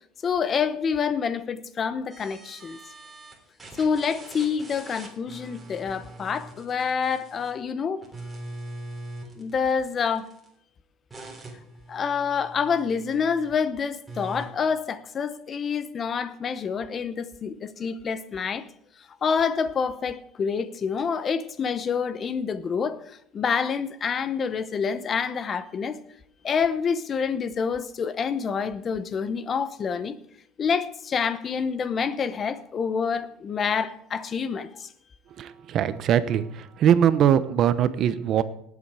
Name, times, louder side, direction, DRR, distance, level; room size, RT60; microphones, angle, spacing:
voice 1, 0.2-2.8 3.8-8.0 9.4-10.3 11.9-18.7 19.2-26.0 26.4-30.2 30.6-34.9, left 6 dB, 30° left, 0.8 m, -27 dB
sound 1, 2.1-3.3 3.6-7.6 8.0-10.5 11.1-13.5 14.1-14.5, right 2 dB, 10° right, 3.5 m, -42 dB
voice 2, 35.4-38.4, right 9 dB, 45° right, 0.9 m, -21 dB
19.0 x 8.3 x 4.8 m
cardioid pair, 145°, 0 cm